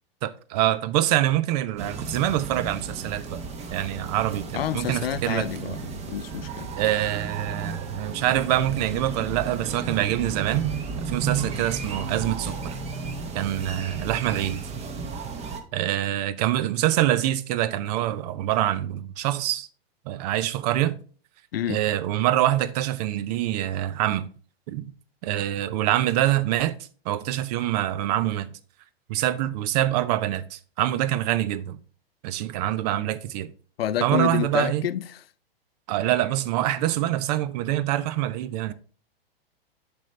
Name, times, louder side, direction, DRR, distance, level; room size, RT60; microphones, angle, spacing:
voice 1, 0.2-3.4 3.7-5.8 6.8-10.7 11.1-12.8 13.3-14.6 15.7-19.7 20.1-21.0 21.7-24.3 24.7-24.9 25.2-26.8 27.1-28.5 29.1-31.8 32.2-33.5 34.0-34.8 35.9-38.7, right 13 dB, 40° right, 0.5 m, -25 dB
sound 1, 1.8-15.6, right 5 dB, 20° right, 0.9 m, -33 dB
voice 2, 4.5-6.7 21.5-21.8 33.8-35.2, left 10 dB, 75° left, 0.6 m, -28 dB
8.2 x 5.2 x 3.2 m
hypercardioid pair, 115°, 30 cm